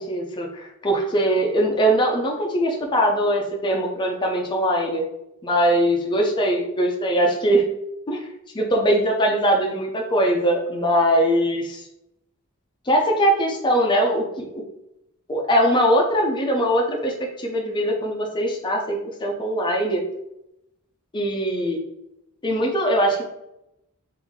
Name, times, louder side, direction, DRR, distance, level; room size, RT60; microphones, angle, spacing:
voice 1, 0.0-5.0 5.4-7.6 8.1-8.2 8.5-11.8 12.9-14.6 15.3-20.0 21.1-21.8 22.4-23.2, equal, 20° left, 0 dB, 0.6 m, -21 dB
3.4 x 2.6 x 3.6 m, 0.84 s
head